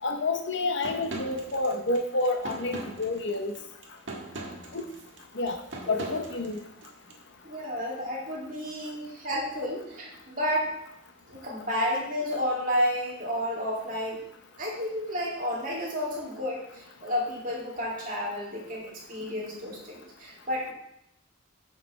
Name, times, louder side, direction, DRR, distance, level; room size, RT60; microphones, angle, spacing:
voice 1, 0.0-3.5 4.7-4.9 5.3-5.6 5.9-6.6, left 2 dB, 60° left, 5 dB, 1.0 m, -29 dB
sound 1, 0.8-7.2, right 2 dB, 65° right, 1.6 m, -40 dB
voice 2, 7.4-10.7 11.3-14.2 14.6-20.7, equal, 40° right, -4 dB, 2.6 m, -31 dB
9.8 x 6.6 x 3.4 m, 0.74 s
head